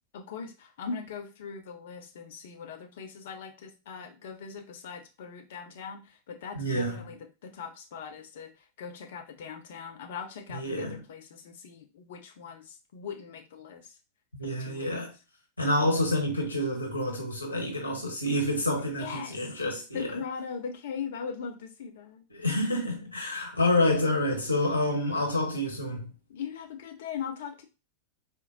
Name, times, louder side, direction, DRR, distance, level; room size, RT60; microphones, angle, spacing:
voice 1, 0.1-14.0 14.4-15.0 19.0-19.5 19.9-22.3 26.3-27.7, left 6 dB, 55° left, 0.6 m, -40 dB
voice 2, 6.5-7.1 10.5-11.0 14.4-15.1 15.6-20.2 22.3-26.1, left 1 dB, 80° left, 1.1 m, -28 dB
4.2 x 2.1 x 2.6 m
figure-of-eight pair, 90°, 0 cm